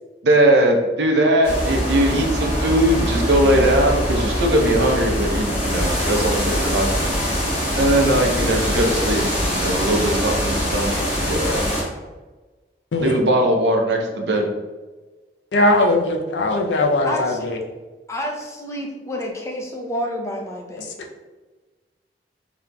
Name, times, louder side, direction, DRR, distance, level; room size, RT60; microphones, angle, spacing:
voice 1, 0.2-6.9 7.8-9.3 9.5-11.6 13.0-14.5, right 1 dB, 75° right, 2 dB, 0.6 m, -20 dB
sound 1, 1.4-11.8, equal, 40° left, 1.4 m, -23 dB
voice 2, 12.9-13.2 15.5-17.6 20.8-20.9, left 1 dB, 90° left, 3 dB, 0.5 m, -19 dB
voice 3, 17.0-17.4 18.1-21.0, left 1 dB, 15° left, 0 dB, 0.5 m, -29 dB
4.0 x 2.8 x 2.2 m, 1.2 s
head